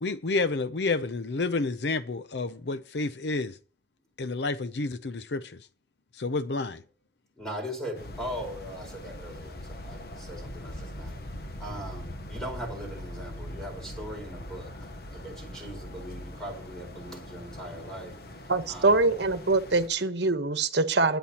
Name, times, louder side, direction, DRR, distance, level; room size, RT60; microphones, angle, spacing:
voice 1, 0.0-3.5 4.2-5.6 6.2-6.8, left 3 dB, 80° left, 0.6 m, -30 dB
voice 2, 7.3-18.2 18.7-19.0, equal, 5° left, 4.6 m, -40 dB
sound 1, 7.9-19.9, left 1 dB, 60° left, 1.1 m, -41 dB
voice 3, 18.5-21.2, right 3 dB, 80° right, 1.1 m, -24 dB
19.5 x 10.0 x 2.9 m
head